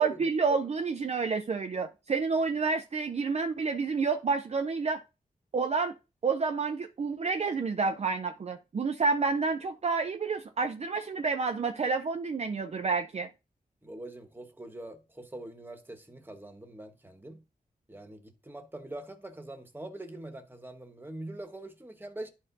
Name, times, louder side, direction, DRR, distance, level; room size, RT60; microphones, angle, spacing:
voice 1, 0.0-5.0 5.5-5.9 6.2-13.3, right 4 dB, 50° right, 0.5 m, -29 dB
voice 2, 13.8-17.4 17.9-22.3, right 1 dB, 15° right, 1.3 m, -43 dB
12.0 x 4.3 x 2.7 m
wide cardioid pair, 95°, 15 cm